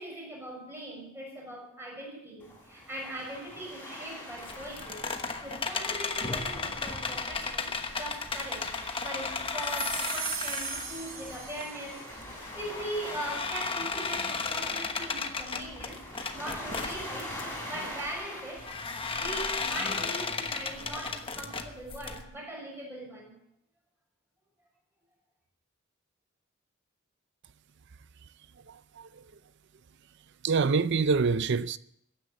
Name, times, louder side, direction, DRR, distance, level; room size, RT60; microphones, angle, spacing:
voice 1, 0.0-5.1 5.4-12.1 12.4-16.0 16.3-17.4 17.6-18.7 19.1-23.3, right 1 dB, 10° right, 6.4 m, -40 dB
Waves surf, 2.4-21.2, left 1 dB, 10° left, 5.2 m, -45 dB
sound 1, 4.4-11.6 12.1-17.4 18.6-22.2, left 4 dB, 25° left, 1.1 m, -35 dB
sound 2, 9.6-12.1, right 6 dB, 40° right, 2.7 m, -37 dB
voice 2, 28.7-29.2 30.4-31.8, right 4 dB, 60° right, 0.6 m, -26 dB
15.0 x 10.0 x 7.5 m
head